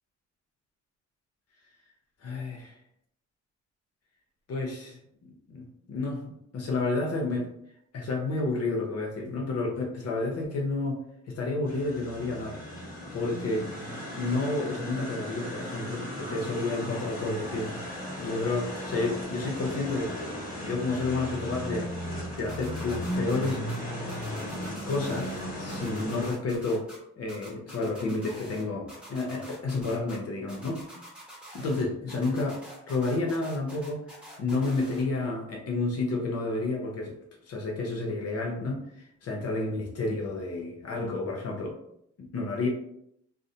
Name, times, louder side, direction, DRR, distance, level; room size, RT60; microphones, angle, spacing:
voice 1, 2.2-2.7 4.5-7.5 7.9-12.6 13.1-13.7 14.1-17.8 18.2-20.4 20.6-22.1 22.4-24.2 24.7-26.8 27.2-30.8 31.5-32.6 32.9-34.1 34.4-37.2 37.5-38.8 39.2-41.7 42.2-42.7, left 3 dB, 55° left, 0 dB, 0.8 m, -30 dB
sound 1, 11.7-26.3, equal, 30° left, 1.3 m, -36 dB
sound 2, 22.5-23.8 24.1-25.4 25.7-27.0 27.3-28.6 28.9-30.2 30.5-31.8 32.1-35.0, equal, 5° right, 1.1 m, -47 dB
2.4 x 2.1 x 2.7 m, 0.74 s
cardioid pair, 90°, 30 cm